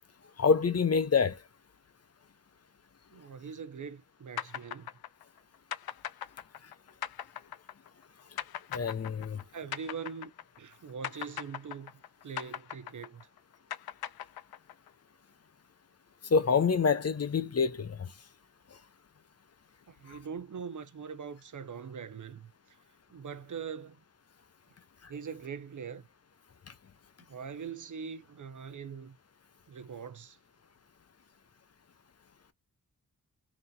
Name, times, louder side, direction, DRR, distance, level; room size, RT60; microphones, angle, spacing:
voice 1, 0.4-1.4 8.7-9.4 16.3-18.1 20.1-20.2, left 5 dB, 45° left, 0.7 m, -26 dB
voice 2, 3.1-4.9 9.2-10.3 10.6-13.3 19.9-22.5 23.1-24.0 25.1-26.1 27.3-29.2 29.7-30.4, right 6 dB, 55° right, 0.7 m, -42 dB
sound 1, 4.4-10.7 11.0-14.9, left 11 dB, 85° left, 0.5 m, -40 dB
3.4 x 2.9 x 4.0 m
wide cardioid pair, 85°, 36 cm